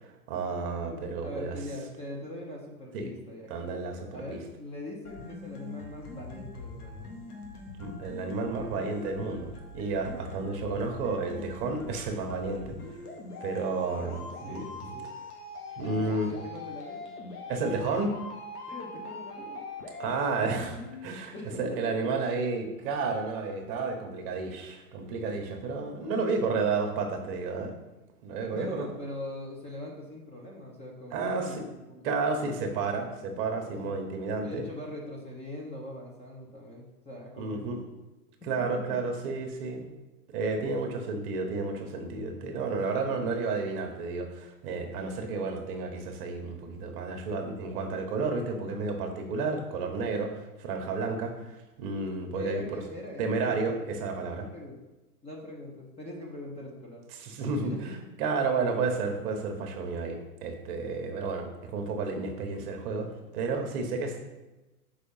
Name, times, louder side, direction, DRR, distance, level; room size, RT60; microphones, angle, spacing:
voice 1, 0.3-1.5 2.9-3.1 3.5-4.1 7.8-9.5 9.7-12.7 13.4-14.6 15.8-16.3 17.5-18.1 20.0-27.7 28.2-28.9 31.1-31.5 32.0-34.6 37.4-37.8 38.4-39.9 40.3-52.8 53.2-54.5 57.1-57.7 58.2-64.3, right 4 dB, 40° right, 4 dB, 1.1 m, -31 dB
voice 2, 1.2-3.7 4.1-7.1 10.1-10.2 13.9-15.1 15.8-17.1 18.7-19.6 21.3-21.8 22.2-22.3 28.5-32.0 33.7-34.0 34.4-37.8 38.7-39.0 52.3-54.0 54.3-54.8 55.2-57.2 57.7-57.8, left 1 dB, 15° left, -2 dB, 0.9 m, -42 dB
sound 1, 5.0-21.1, left 3 dB, 80° left, 1.6 m, -42 dB
4.9 x 4.1 x 5.5 m, 1.1 s
hypercardioid pair, 125°, 45 cm